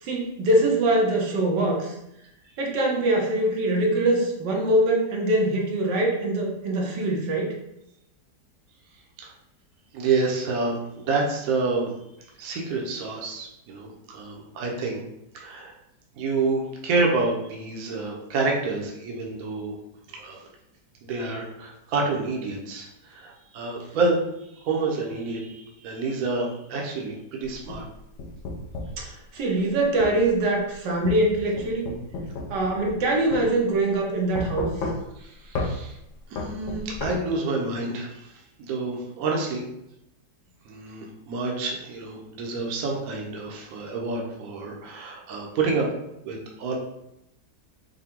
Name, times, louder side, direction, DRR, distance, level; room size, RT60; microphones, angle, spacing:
voice 1, 0.0-1.9 2.6-7.5 29.0-31.9 32.5-34.7, right 1 dB, 85° right, -1 dB, 1.5 m, -23 dB
voice 2, 9.9-12.0 12.4-15.0 15.3-15.7 16.2-19.7 20.1-20.4 21.0-24.2 24.6-27.8 35.2-35.9 36.3-38.3 38.6-39.6 40.7-45.9 46.2-46.8, right 3 dB, 65° right, -1 dB, 1.1 m, -28 dB
sound 1, 27.5-29.0 30.0-30.2 31.0-33.0 33.3-33.4 34.3-35.2 35.5-35.7 36.4-37.1, left 2 dB, 60° left, 0.9 m, -31 dB
5.6 x 2.2 x 3.6 m, 0.83 s
omnidirectional pair, 1.8 m